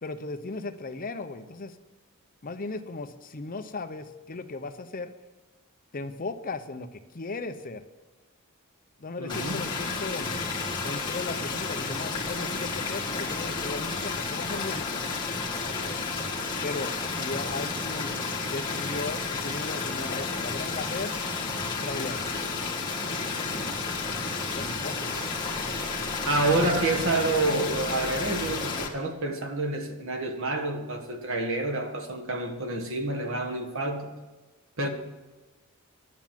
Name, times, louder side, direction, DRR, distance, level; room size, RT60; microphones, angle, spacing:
voice 1, 0.0-1.8 2.4-5.1 5.9-7.8 9.0-10.3 10.8-15.0 15.7-16.0 16.6-18.1 18.5-21.2 21.8-22.2 23.0-23.6 24.5-25.3, left 3 dB, 40° left, 8 dB, 0.7 m, -37 dB
voice 2, 9.2-9.6 26.3-34.1 34.8-34.9, right 2 dB, 60° right, 4 dB, 1.6 m, -28 dB
sound 1, 9.3-28.9, left 4 dB, 20° left, 1.6 m, -31 dB
11.0 x 7.2 x 7.4 m, 1.2 s
head